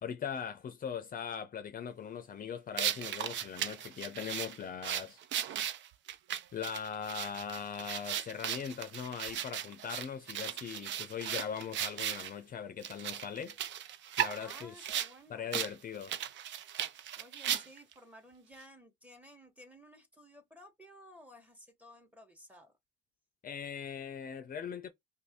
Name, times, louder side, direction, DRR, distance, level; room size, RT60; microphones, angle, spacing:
voice 1, 0.0-5.2 6.5-13.6 14.2-14.7 15.3-16.2 23.4-24.9, left 7 dB, 45° left, 0.5 m, -40 dB
sound 1, 2.8-12.3 12.8-15.1 15.5-15.7 16.0-17.9, right 10 dB, 70° right, 0.4 m, -36 dB
voice 2, 14.4-15.6 17.2-22.7, equal, 5° right, 1.2 m, -55 dB
2.6 x 2.6 x 3.5 m
cardioid pair, 90°, 20 cm